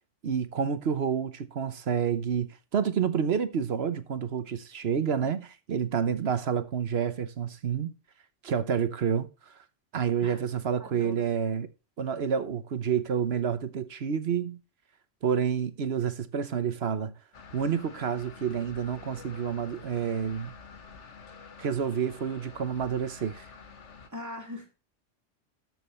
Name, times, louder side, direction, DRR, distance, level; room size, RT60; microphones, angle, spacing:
voice 1, 0.2-7.9 8.4-9.5 9.9-11.7 12.0-14.6 15.2-17.1 17.5-20.5 21.6-23.5, right 7 dB, 60° right, 1.1 m, -29 dB
voice 2, 10.8-11.4 24.1-24.7, left 1 dB, 15° right, 2.9 m, -42 dB
sound 1, 17.3-24.1, left 5 dB, 70° left, 1.5 m, -48 dB
12.5 x 6.2 x 3.2 m
omnidirectional pair, 1.3 m